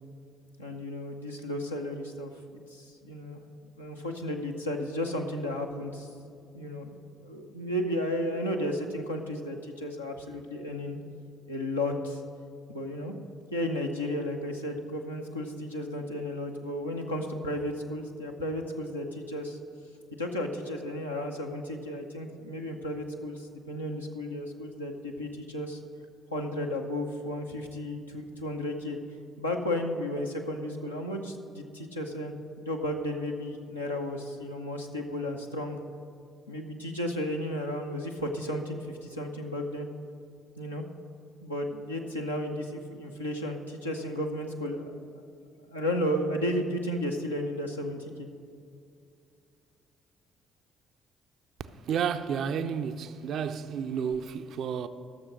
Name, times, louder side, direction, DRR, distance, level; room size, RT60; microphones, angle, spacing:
voice 1, 0.6-2.3 2.7-3.4 3.8-6.1 6.5-11.0 11.5-12.2 12.7-13.2 13.5-19.6 20.2-25.8 26.3-29.0 29.4-35.8 36.5-39.9 40.6-40.8 41.4-45.2 45.7-48.3, left 1 dB, 85° left, 0.7 m, -33 dB
voice 2, 51.9-54.9, right 7 dB, 55° right, 0.5 m, -31 dB
13.5 x 6.8 x 6.1 m
figure-of-eight pair, 45°, 0 cm